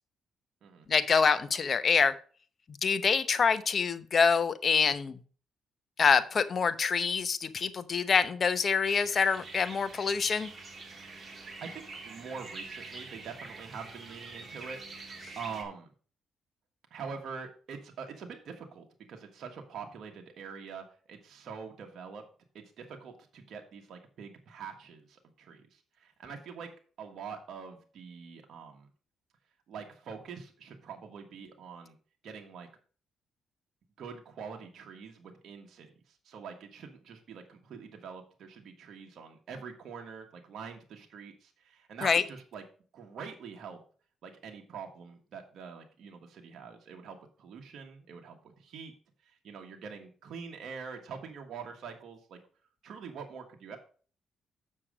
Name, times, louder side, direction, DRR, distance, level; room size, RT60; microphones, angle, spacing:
voice 1, 0.9-2.1 2.8-5.2 6.0-10.5 42.0-42.2, left 5 dB, 45° left, 12 dB, 0.8 m, -26 dB
sound 1, 8.8-15.6, right 3 dB, 35° right, 2.1 m, -45 dB
voice 2, 11.3-15.9 16.9-22.2 22.5-26.7 27.0-28.9 29.7-32.0 32.2-32.7 34.0-42.6 42.9-43.8 44.2-48.9 49.2-52.4 52.8-53.8, right 6 dB, 65° right, 2 dB, 1.5 m, -45 dB
7.4 x 6.5 x 5.0 m, 0.41 s
cardioid pair, 90°, 0 cm